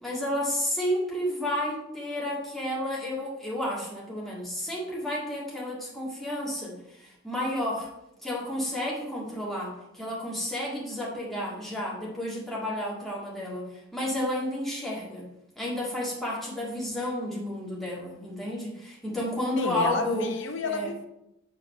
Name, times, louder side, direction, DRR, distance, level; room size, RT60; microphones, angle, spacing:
voice 1, 0.0-7.9 8.2-15.2 15.5-20.3 20.7-20.9, left 1 dB, ahead, -5 dB, 1.8 m, -31 dB
voice 2, 19.5-21.1, left 3 dB, 60° left, 6 dB, 0.8 m, -31 dB
7.4 x 4.0 x 5.4 m, 0.87 s
head